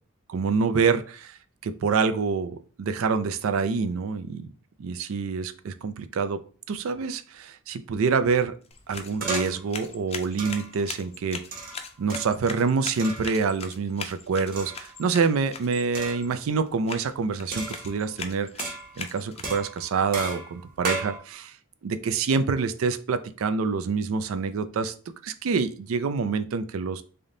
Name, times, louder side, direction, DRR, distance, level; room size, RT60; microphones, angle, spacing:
voice 1, 0.3-1.4 1.6-4.5 4.8-6.4 6.7-8.5 8.9-11.5 12.0-18.5 19.0-21.5 21.8-24.9 25.2-27.0, right 5 dB, 80° right, 0.4 m, -26 dB
sound 1, 8.6-19.8, left 5 dB, 30° left, 0.5 m, -41 dB
sound 2, 9.2-9.7 10.4-10.8 11.5-12.4 13.0-13.3 14.5-15.0 15.9-16.3 17.5-18.2 18.6-19.1 19.4-21.2, right 3 dB, 45° right, 1.0 m, -34 dB
3.4 x 2.7 x 3.7 m
head